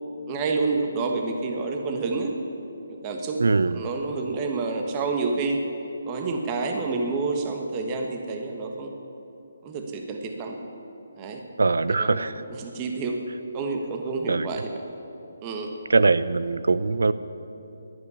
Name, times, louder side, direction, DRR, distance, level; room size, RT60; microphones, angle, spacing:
voice 1, 0.3-2.3 2.9-3.4 3.7-5.6 6.1-8.9 9.6-10.6 11.2-11.4 11.9-13.2 13.5-14.7 15.4-15.7, right 3 dB, 20° right, 3 dB, 1.3 m, -28 dB
voice 2, 3.4-3.8 11.6-12.4 14.3-14.5 15.9-17.1, right 3 dB, 85° right, 15 dB, 0.6 m, -21 dB
11.5 x 11.0 x 9.8 m, 2.9 s
hypercardioid pair, 160°, 0 cm